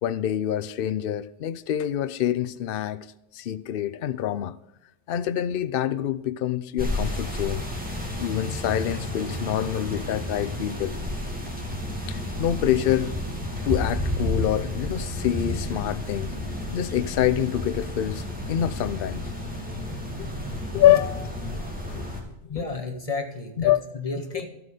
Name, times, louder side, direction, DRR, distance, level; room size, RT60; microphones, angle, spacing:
voice 1, 0.0-3.1 3.3-4.5 5.1-7.6 8.2-11.0 12.1-13.1 13.6-16.3 16.7-18.2 18.5-19.2 20.2-20.3 20.7-21.1 21.9-22.6 23.6-23.9, left 11 dB, 60° left, 0.7 m, -26 dB
sound 1, 6.8-22.2, left 1 dB, 5° right, 2.5 m, -31 dB
voice 2, 22.5-24.5, left 3 dB, 30° left, 1.6 m, -32 dB
13.0 x 7.9 x 5.1 m
omnidirectional pair, 1.2 m